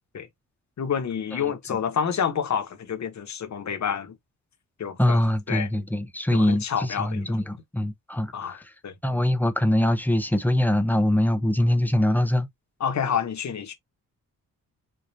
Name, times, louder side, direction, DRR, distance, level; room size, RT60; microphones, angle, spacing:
voice 1, 0.8-4.1 4.8-5.2 5.5-5.7 6.3-7.4 8.3-8.9 12.8-13.7, left 7 dB, 55° left, 1.2 m, -28 dB
voice 2, 5.0-8.3 9.0-12.5, left 1 dB, 5° left, 0.7 m, -23 dB
4.8 x 2.6 x 2.7 m
cardioid pair, 125°, 34 cm